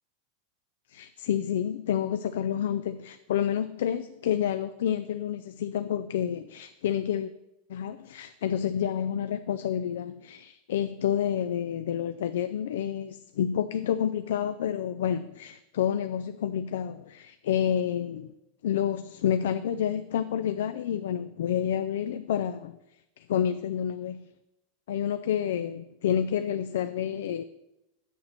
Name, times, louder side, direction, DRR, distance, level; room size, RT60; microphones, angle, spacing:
voice 1, 0.9-7.3 7.7-18.3 18.6-22.8 23.2-24.3 24.9-27.4, left 9 dB, 85° left, 0.4 m, -29 dB
7.8 x 6.8 x 5.9 m
supercardioid pair, 125°, 0 cm